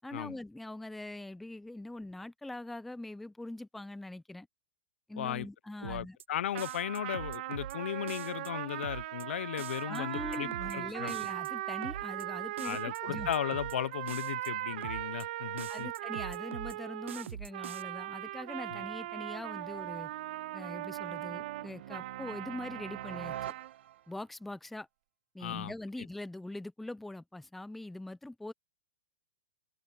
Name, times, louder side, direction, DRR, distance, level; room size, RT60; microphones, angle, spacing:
voice 1, 0.0-4.5 5.1-6.2 9.9-13.3 15.7-20.1 20.5-23.5 24.1-24.9 25.3-28.5, left 2 dB, ahead, 0.4 m, -42 dB
voice 2, 5.2-5.5 5.8-11.2 12.6-15.9 18.7-18.8 25.4-25.7, left 11 dB, 75° left, 0.5 m, -36 dB
sound 1, 5.8-6.2 6.6-7.8 8.1-8.5 8.8-9.2 9.6-10.8 11.1-11.5 11.8-12.2 12.6-13.8 14.1-14.5 14.8-15.2 15.6-16.8 17.1-17.8, right 9 dB, 90° right, 0.7 m, -43 dB
sound 2, 6.5-23.7, right 16 dB, 50° right, 1.1 m, -39 dB
sound 3, 17.8-24.3, right 12 dB, 65° right, 1.4 m, -47 dB
hypercardioid pair, 160°, 6 cm